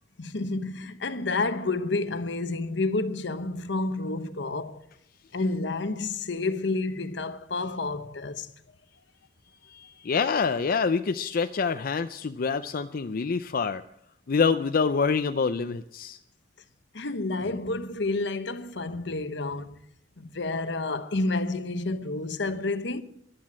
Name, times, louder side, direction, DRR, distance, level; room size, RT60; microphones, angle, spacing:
voice 1, 0.2-4.9 5.3-8.5 16.9-19.8 20.2-23.0, left 3 dB, 70° left, 1.0 m, -30 dB
voice 2, 9.6-13.8 14.3-16.2, left 5 dB, 50° left, 0.5 m, -26 dB
13.5 x 11.5 x 7.4 m
head